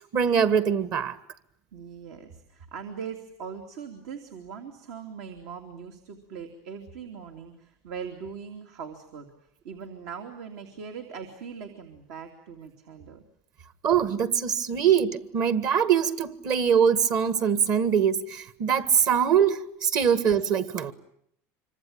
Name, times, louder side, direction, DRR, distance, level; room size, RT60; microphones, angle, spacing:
voice 1, 0.1-1.2 13.8-20.9, right 7 dB, 50° right, 1.8 m, -23 dB
voice 2, 1.7-9.3 9.6-13.2, right 6 dB, 80° right, 3.0 m, -40 dB
26.0 x 24.5 x 8.9 m
supercardioid pair, 125°, 8 cm